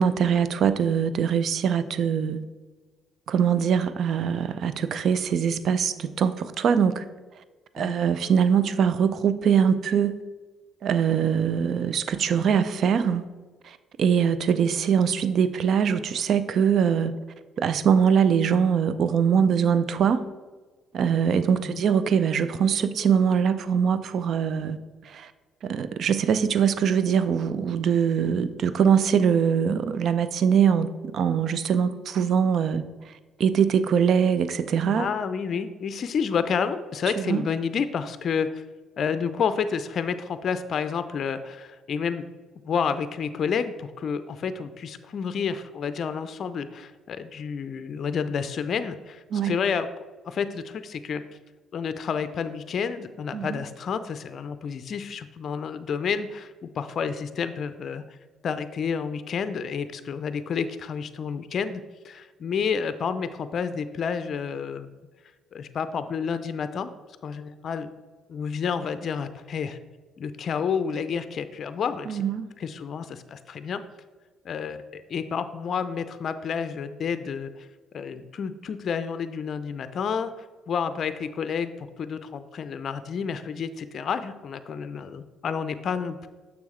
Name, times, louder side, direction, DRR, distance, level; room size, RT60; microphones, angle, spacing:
voice 1, 0.0-2.4 3.3-7.0 7.7-10.2 10.8-13.2 13.6-17.2 17.6-20.2 20.9-24.8 25.0-25.3 25.6-33.1 33.4-35.1 37.2-37.4 49.3-49.6 53.3-53.6 72.1-72.5, right 7 dB, 60° right, 13 dB, 0.4 m, -22 dB
voice 2, 35.0-38.6 39.0-42.2 42.6-49.9 50.2-51.2 51.7-58.0 58.4-64.9 65.5-66.9 67.2-67.9 68.3-69.8 70.2-72.2 72.6-73.8 74.4-77.7 77.9-80.3 80.7-86.3, left 6 dB, 55° left, 11 dB, 0.4 m, -30 dB
7.0 x 6.0 x 3.2 m, 1.3 s
hypercardioid pair, 55°, 0 cm